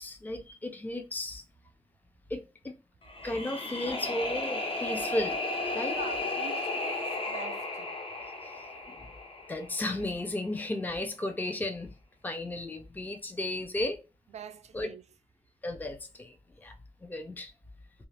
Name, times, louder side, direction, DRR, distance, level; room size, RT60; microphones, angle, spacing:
voice 1, 0.0-1.4 2.3-2.8 3.2-5.4 5.7-6.0 8.4-9.1 9.5-11.9 12.2-14.0 14.7-14.9 15.6-16.8 17.0-17.5, left 1 dB, 15° left, 0.4 m, -34 dB
sound 1, 3.0-10.1, left 2 dB, 50° left, 0.7 m, -34 dB
voice 2, 5.9-8.0 14.3-15.0, right 7 dB, 70° right, 0.4 m, -44 dB
2.4 x 2.4 x 3.2 m
wide cardioid pair, 135°, 12 cm